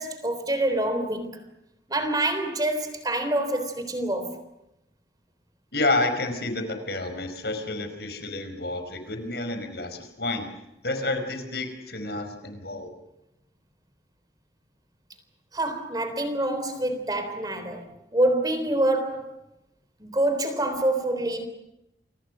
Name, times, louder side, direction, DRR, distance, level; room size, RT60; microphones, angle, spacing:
voice 1, 0.0-1.4 1.9-4.4 15.5-19.3 20.0-21.5, right 1 dB, 20° right, 3.7 m, -26 dB
voice 2, 5.7-10.5 10.8-12.9, left 2 dB, 70° left, 5.2 m, -29 dB
29.5 x 24.5 x 6.3 m
head